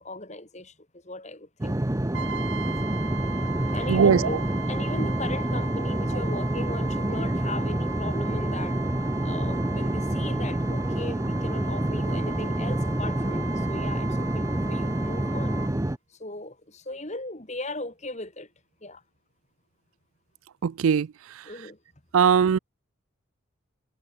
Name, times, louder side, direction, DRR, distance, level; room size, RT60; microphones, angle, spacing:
voice 1, 0.0-1.8 3.7-4.4 4.7-8.8 9.2-15.6 16.1-18.5 18.8-19.0 21.4-21.8, left 2 dB, 35° left, 3.0 m, -38 dB
sound 1, 1.6-16.0, right 1 dB, 15° right, 0.6 m, -27 dB
Brass instrument, 2.1-15.8, right 5 dB, 60° right, 1.5 m, -38 dB
voice 2, 3.9-4.3 20.6-21.1 22.1-22.6, right 7 dB, 80° right, 0.4 m, -19 dB
head